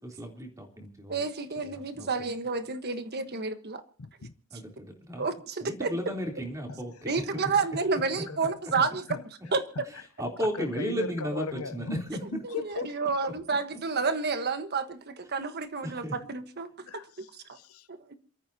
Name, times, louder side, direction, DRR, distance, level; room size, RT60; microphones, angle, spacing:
voice 1, 0.0-1.2 1.6-2.1 4.5-5.2 5.6-7.1 10.2-12.2 15.8-16.1, equal, 15° right, 3.5 m, -34 dB
voice 2, 1.1-3.8 5.2-5.9 7.1-9.0 9.5-9.6 12.4-17.6 17.9-18.1, right 4 dB, 45° right, 1.3 m, -30 dB
voice 3, 4.0-4.3 6.7-7.0 7.5-7.6 8.3-10.1 10.4-13.3 16.8-17.9, left 4 dB, 75° left, 0.9 m, -39 dB
28.0 x 14.0 x 2.8 m
head